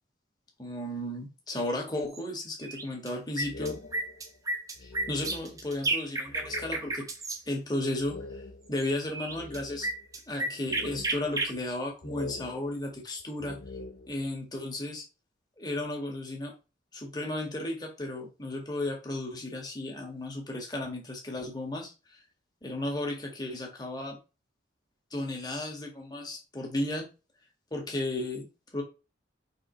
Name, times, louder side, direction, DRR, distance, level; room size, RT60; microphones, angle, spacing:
voice 1, 0.6-3.8 4.8-7.0 7.5-8.4 8.7-9.9 10.3-13.6 14.1-15.0 15.6-16.5 16.9-21.9 22.6-24.2 25.1-27.1 27.7-28.5 28.7-28.8, left 1 dB, 20° left, 0 dB, 1.8 m, -34 dB
sound 1, 2.1-2.2 2.6-3.1 3.4-7.4 8.8-8.9 9.1-11.5, right 2 dB, 20° right, 0.9 m, -32 dB
sound 2, 3.4-5.8 6.3-7.1 7.5-7.6 8.0-10.2 10.7-11.7 12.0-14.4, left 3 dB, 60° left, 0.6 m, -44 dB
5.1 x 4.0 x 5.2 m, 0.31 s
head